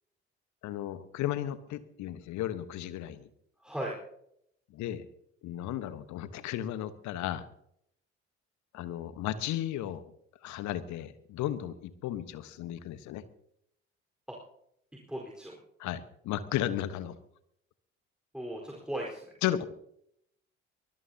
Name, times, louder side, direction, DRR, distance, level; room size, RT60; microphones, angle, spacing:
voice 1, 0.6-3.3 4.7-5.0 5.4-7.5 8.7-10.1 10.4-13.2 15.8-17.1 19.4-19.7, left 12 dB, 60° left, 13 dB, 1.3 m, -34 dB
voice 2, 3.6-3.9 14.3-14.4 15.1-15.5 18.3-19.3, right 1 dB, ahead, -2 dB, 4.6 m, -37 dB
24.0 x 20.0 x 2.9 m, 0.75 s
figure-of-eight pair, 50°, 33 cm